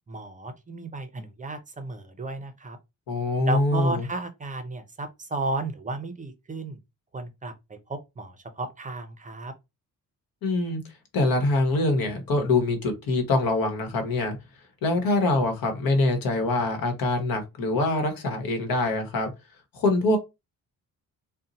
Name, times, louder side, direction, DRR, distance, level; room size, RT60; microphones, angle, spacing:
voice 1, 0.1-2.8 3.5-6.8 7.1-9.5, right 2 dB, 25° right, 0.5 m, -34 dB
voice 2, 3.1-4.1 10.4-10.8 11.1-14.4 14.8-19.3 19.7-20.2, left 2 dB, 80° left, 1.1 m, -24 dB
2.7 x 2.1 x 3.9 m
cardioid pair, 130°, 34 cm